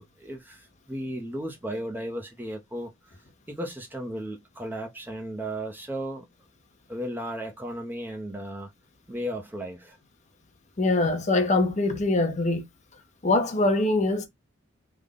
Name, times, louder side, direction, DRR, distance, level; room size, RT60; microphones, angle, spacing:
voice 1, 0.0-3.2 3.5-6.3 6.9-8.7 9.1-10.0, equal, 10° right, 0.5 m, -35 dB
voice 2, 10.8-12.6 13.2-14.2, left 2 dB, 35° left, 0.6 m, -23 dB
3.4 x 2.1 x 3.7 m
head